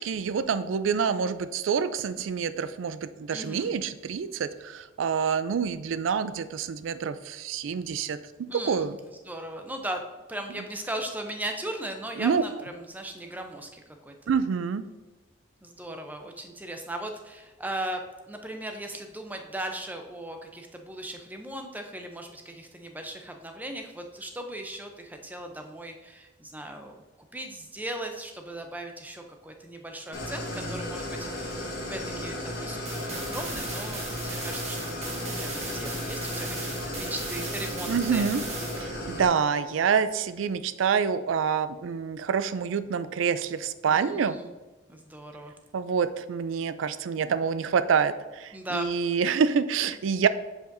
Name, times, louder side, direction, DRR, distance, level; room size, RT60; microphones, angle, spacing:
voice 1, 0.0-9.0 12.2-12.4 14.3-14.9 37.9-38.4 38.8-44.4 45.7-50.3, right 6 dB, 75° right, 13 dB, 0.4 m, -27 dB
voice 2, 3.3-3.7 8.5-10.0 10.3-14.3 15.6-18.0 18.3-27.0 27.3-38.3 43.9-44.5 44.9-45.5 48.5-48.9, right 1 dB, 10° right, 4 dB, 0.5 m, -38 dB
Idling, 30.1-39.3, left 1 dB, 55° left, 1.5 m, -34 dB
sound 1, 32.8-38.8, right 3 dB, 35° right, 1.1 m, -38 dB
7.6 x 5.0 x 2.6 m, 1.2 s
head